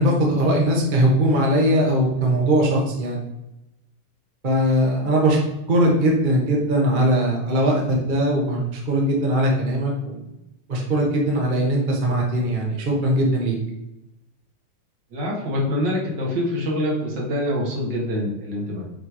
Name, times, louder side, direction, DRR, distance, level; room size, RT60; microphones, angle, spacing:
voice 1, 0.0-3.2 4.4-5.4 5.7-10.2 10.7-13.6, right 1 dB, 30° right, -1 dB, 0.9 m, -20 dB
voice 2, 15.1-18.8, left 1 dB, 60° right, -3 dB, 2.0 m, -25 dB
6.6 x 3.2 x 4.7 m, 0.92 s
omnidirectional pair, 2.3 m